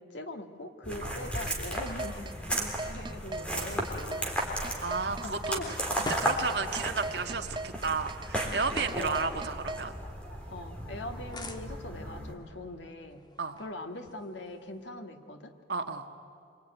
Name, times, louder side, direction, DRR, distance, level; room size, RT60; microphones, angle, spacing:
voice 1, 0.0-4.5 5.1-5.7 9.0-9.5 10.5-13.2 13.6-15.5, left 1 dB, 80° left, 6 dB, 1.9 m, -42 dB
sound 1, 0.8-12.3, right 1 dB, 5° left, 3.6 m, -35 dB
sound 2, 1.5-9.8, right 2 dB, 25° right, 0.6 m, -38 dB
voice 2, 3.5-3.8 4.2-4.3 4.8-9.9 13.4-13.6 15.7-16.1, right 4 dB, 65° right, 5 dB, 1.7 m, -33 dB
sound 3, 5.1-15.0, left 1 dB, 25° left, 1.5 m, -47 dB
26.0 x 24.0 x 9.4 m, 2.6 s
head